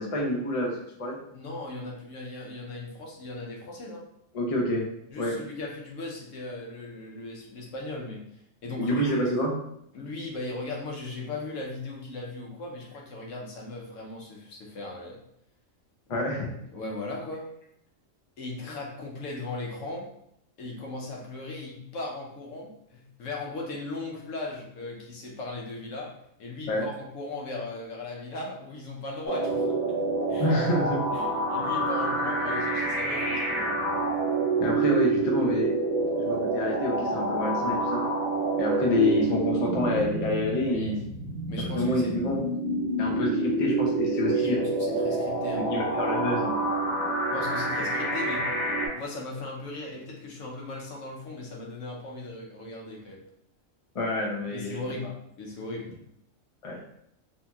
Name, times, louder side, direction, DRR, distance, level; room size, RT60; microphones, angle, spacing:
voice 1, 0.0-1.2 4.3-4.8 5.2-5.4 8.8-9.5 16.1-16.5 26.7-26.9 30.4-31.0 34.6-35.7 36.2-38.0 38.6-41.0 41.7-42.4 43.0-44.6 45.5-46.5 53.9-54.8 56.6-56.8, left 1 dB, 55° left, -1 dB, 0.4 m, -27 dB
voice 2, 1.3-4.1 5.1-9.0 9.9-15.2 16.7-17.5 18.4-20.1 20.6-29.8 30.3-30.5 31.1-33.8 40.6-41.0 41.5-42.1 44.2-45.7 47.3-48.5 48.9-53.2 54.5-56.0, left 2 dB, 70° left, -1 dB, 1.0 m, -38 dB
sound 1, 29.3-48.9, right 2 dB, 10° left, 0.9 m, -27 dB
2.8 x 2.8 x 2.3 m, 0.73 s
omnidirectional pair, 1.4 m